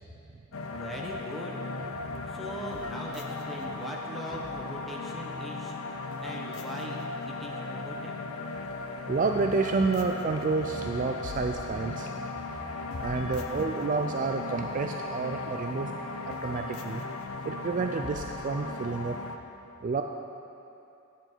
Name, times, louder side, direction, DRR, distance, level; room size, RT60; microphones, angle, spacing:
sound 1, 0.5-19.4, left 3 dB, 75° left, 0.6 m, -37 dB
voice 1, 0.7-1.6 2.2-8.2, equal, ahead, -3 dB, 1.0 m, -41 dB
voice 2, 9.1-12.1 13.0-15.9 16.3-17.0 17.4-19.2 19.8-20.0, right 4 dB, 35° right, 4 dB, 0.3 m, -29 dB
10.0 x 8.6 x 4.5 m, 2.7 s
head